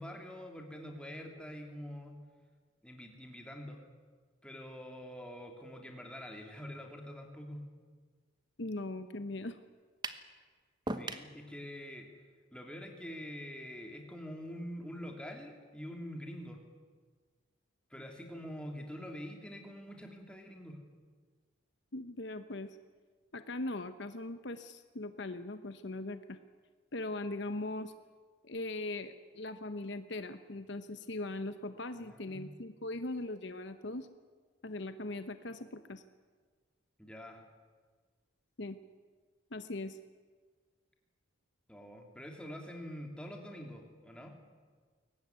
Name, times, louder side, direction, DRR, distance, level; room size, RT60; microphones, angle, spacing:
voice 1, 0.0-2.2 2.8-3.8 4.4-7.6 10.9-12.1 12.5-16.6 17.9-20.8 32.0-32.5 37.0-37.4 41.7-44.3, equal, 5° left, 2 dB, 3.0 m, -45 dB
voice 2, 8.6-9.6 21.9-22.8 23.3-26.4 26.9-27.9 28.4-34.1 34.6-36.0 38.6-38.8 39.5-40.0, left 2 dB, 60° left, 10 dB, 0.9 m, -40 dB
sound 1, 10.0-10.3 10.9-11.3, right 2 dB, 20° right, 1.1 m, -37 dB
22.5 x 18.5 x 9.5 m, 1.5 s
head